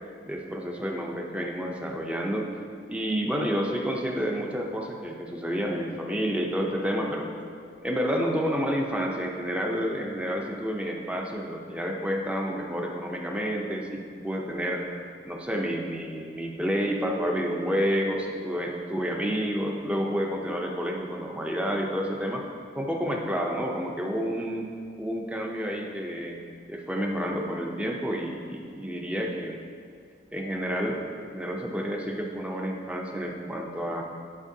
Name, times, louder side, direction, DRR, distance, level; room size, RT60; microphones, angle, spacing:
voice 1, 0.3-2.5 2.9-7.3 7.8-14.8 15.2-22.5 22.7-24.7 25.0-26.4 26.7-29.6 30.3-34.0, equal, 5° right, 1 dB, 0.5 m, -29 dB
9.8 x 4.4 x 2.7 m, 2.1 s
head